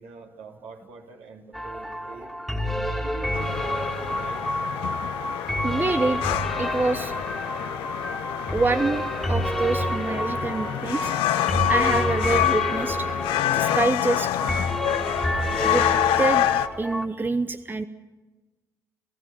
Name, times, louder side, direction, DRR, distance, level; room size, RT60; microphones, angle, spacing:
voice 1, 0.0-2.4 3.0-4.6, right 5 dB, 60° right, 1 dB, 3.1 m, -44 dB
sound 1, 1.5-17.1, equal, ahead, 2.5 m, -29 dB
sound 2, 3.3-16.7, left 13 dB, 65° left, 0.8 m, -27 dB
voice 2, 5.6-6.2 6.6-7.1 8.5-9.0 9.3-11.1 11.7-13.1 13.5-14.3 15.6-15.9 16.2-16.5 16.8-17.9, right 3 dB, 20° right, 11 dB, 0.9 m, -26 dB
30.0 x 15.5 x 7.4 m, 1.2 s
figure-of-eight pair, 50°, 10 cm